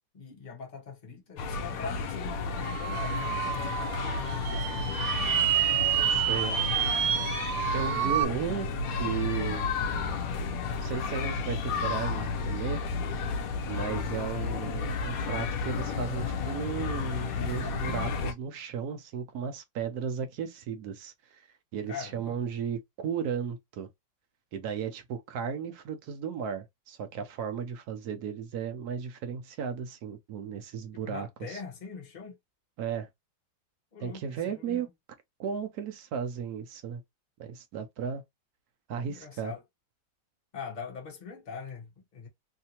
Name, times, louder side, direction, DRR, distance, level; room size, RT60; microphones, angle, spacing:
voice 1, 0.1-4.9 5.9-6.9 7.7-8.7 21.9-22.4 30.9-32.4 33.9-34.9 39.1-39.6 40.5-42.3, left 5 dB, 30° left, 0.9 m, -43 dB
Fastfoodrestaurant outside, 1.4-18.3, left 4 dB, 65° left, 0.9 m, -32 dB
sound 1, 2.6-8.2, right 11 dB, 90° right, 1.3 m, -29 dB
voice 2, 6.1-6.6 7.7-8.7 9.0-9.7 10.8-12.8 13.7-21.5 21.7-23.9 24.5-31.6 32.8-33.1 34.0-34.9 35.4-37.0 37.4-38.2 38.9-39.5, right 7 dB, 65° right, 1.1 m, -35 dB
3.3 x 2.7 x 2.8 m
omnidirectional pair, 2.0 m